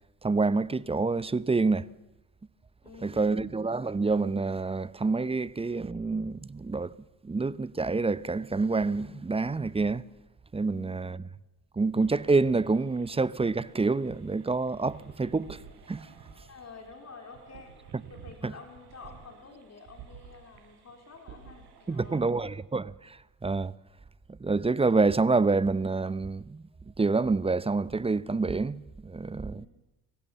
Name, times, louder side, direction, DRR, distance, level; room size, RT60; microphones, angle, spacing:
voice 1, 0.2-1.9 3.0-6.9 7.2-10.0 10.5-11.2 11.8-15.6 15.9-16.1 18.4-18.5 21.9-23.7 24.4-26.6 27.0-29.7, right 3 dB, 15° right, 0.7 m, -27 dB
voice 2, 2.8-3.4 10.7-11.1 16.4-22.3 29.6-29.7, left 4 dB, 35° left, 3.7 m, -49 dB
sound 1, 12.0-22.2, right 7 dB, 60° right, 4.1 m, -52 dB
24.0 x 15.5 x 7.2 m
hypercardioid pair, 55°, 44 cm